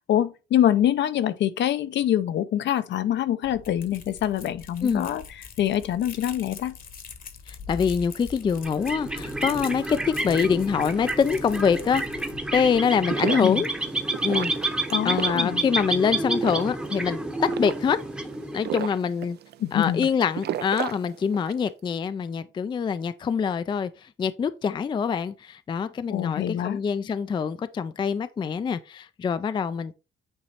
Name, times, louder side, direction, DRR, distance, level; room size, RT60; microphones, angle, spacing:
voice 1, 0.1-6.8 13.4-13.6 14.9-15.6 19.6-20.1 26.1-26.8, left 11 dB, 65° left, 0.6 m, -25 dB
sound 1, 3.4-12.8, left 6 dB, 45° left, 1.1 m, -43 dB
voice 2, 7.5-10.0 10.2-12.0 12.5-13.7 14.2-14.5 15.0-18.0 18.5-19.4 19.7-29.9, left 6 dB, 25° left, 0.3 m, -25 dB
sound 2, 8.6-19.0, right 2 dB, 5° right, 0.8 m, -29 dB
sound 3, 12.9-21.7, right 11 dB, 55° right, 0.4 m, -35 dB
8.8 x 3.1 x 4.2 m
cardioid pair, 145°, 20 cm